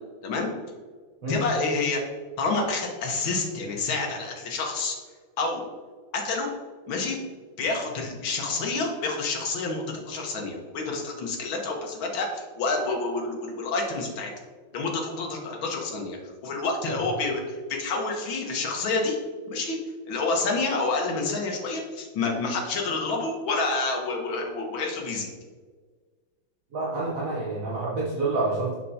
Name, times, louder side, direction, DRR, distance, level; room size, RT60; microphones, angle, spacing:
voice 1, 1.3-2.0 2.4-5.0 5.4-5.7 6.1-6.5 6.9-7.2 7.6-14.3 14.7-16.2 16.4-19.2 19.5-19.8 20.1-25.3, left 3 dB, 75° left, 1 dB, 1.8 m, -28 dB
voice 2, 26.7-28.7, right 2 dB, 50° right, -5 dB, 1.2 m, -28 dB
6.6 x 5.8 x 2.7 m, 1.5 s
omnidirectional pair, 2.2 m